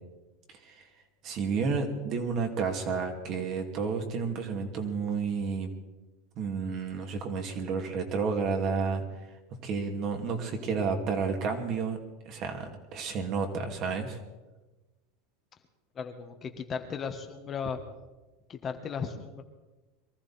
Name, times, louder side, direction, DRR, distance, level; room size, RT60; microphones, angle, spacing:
voice 1, 1.2-5.7 6.4-9.0 9.6-12.0 12.3-14.2, right 5 dB, 45° right, 3 dB, 2.6 m, -31 dB
voice 2, 15.9-17.8 18.5-19.4, left 6 dB, 30° left, 5 dB, 1.5 m, -36 dB
23.0 x 14.0 x 4.3 m, 1.2 s
supercardioid pair, 135°, 0 cm